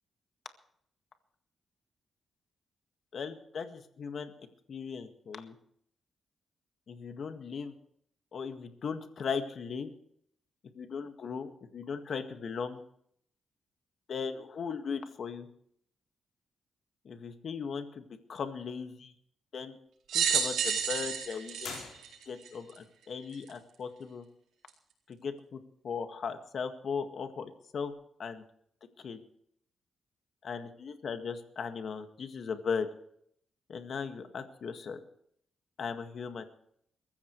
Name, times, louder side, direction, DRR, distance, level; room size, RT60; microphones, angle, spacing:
voice 1, 3.1-4.3 4.7-5.6 6.9-7.7 8.3-9.9 10.8-12.8 14.1-15.5 17.1-18.0 18.3-19.1 19.5-19.8 20.1-21.9 22.3-24.2 25.1-25.6 25.8-27.9 28.2-28.4 29.0-29.2 30.4-32.9 33.7-35.0 35.8-36.4, left 6 dB, 60° left, 7 dB, 1.9 m, -37 dB
sound 1, 20.1-22.8 23.5-23.6 24.7-24.8, right 7 dB, 85° right, 4.1 m, -30 dB
sound 2, 21.6-22.6, left 6 dB, 75° left, 4.1 m, -45 dB
22.5 x 14.5 x 3.2 m, 0.67 s
cardioid pair, 90°, 0 cm